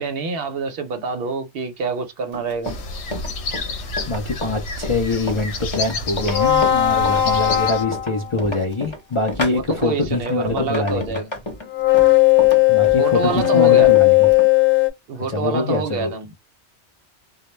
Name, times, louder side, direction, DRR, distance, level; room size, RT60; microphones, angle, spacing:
voice 1, 0.0-2.8 9.5-11.3 13.0-13.9 15.1-16.3, right 4 dB, 60° right, 0.7 m, -26 dB
Run, 2.3-14.5, left 1 dB, 30° left, 0.8 m, -31 dB
sound 1, 2.6-7.8, left 2 dB, 90° left, 1.0 m, -30 dB
voice 2, 3.8-11.2 12.7-14.3 15.2-16.1, left 3 dB, 45° left, 0.4 m, -24 dB
sound 2, 6.2-8.5 11.7-14.9, left 15 dB, 65° left, 1.0 m, -16 dB
2.2 x 2.0 x 3.0 m
omnidirectional pair, 1.2 m